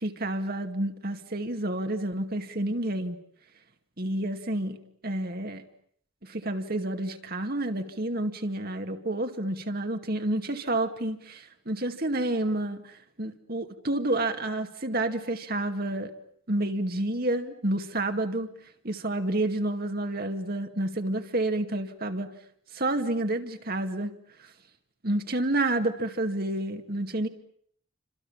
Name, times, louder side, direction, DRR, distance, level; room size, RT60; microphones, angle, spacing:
voice 1, 0.0-3.2 4.0-5.6 6.2-16.1 16.5-18.5 18.8-22.3 22.7-24.1 25.0-27.3, right 1 dB, 50° right, 6 dB, 2.3 m, -29 dB
29.5 x 26.5 x 7.3 m, 0.65 s
head